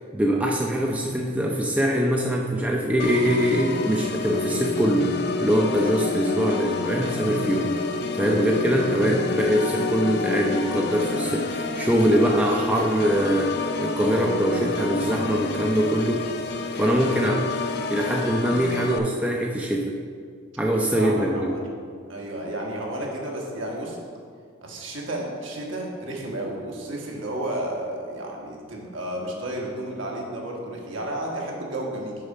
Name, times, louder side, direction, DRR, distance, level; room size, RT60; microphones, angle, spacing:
voice 1, 0.1-5.1 5.4-7.7 8.1-16.2 16.8-17.4 17.9-19.9 20.6-21.5, equal, 5° right, -1 dB, 0.5 m, -23 dB
Organ, 3.0-19.0, left 3 dB, 50° left, 0.4 m, -29 dB
voice 2, 20.7-21.6 22.1-24.0 24.6-32.2, right 1 dB, 65° right, -2 dB, 1.4 m, -32 dB
6.5 x 5.0 x 5.4 m, 2.1 s
head